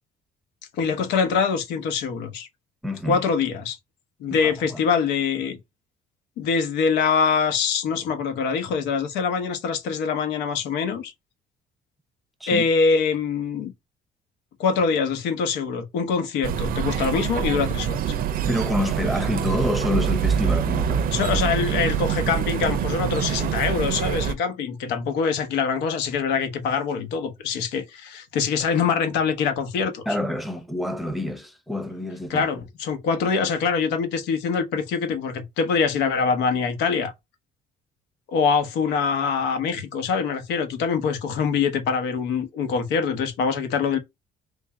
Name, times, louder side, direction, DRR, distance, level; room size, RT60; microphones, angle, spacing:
voice 1, 0.8-2.5 3.1-3.8 4.2-5.6 6.4-11.1 12.5-13.7 14.6-18.0 21.1-30.0 32.3-37.1 38.3-44.0, left 5 dB, 85° left, 1.0 m, -24 dB
voice 2, 2.8-3.2 4.3-4.8 12.4-12.7 18.5-21.1 30.1-32.5, left 1 dB, ahead, 0.7 m, -27 dB
sound 1, 16.4-24.3, right 9 dB, 60° right, 0.5 m, -25 dB
3.5 x 2.7 x 3.4 m
cardioid pair, 110°, 17 cm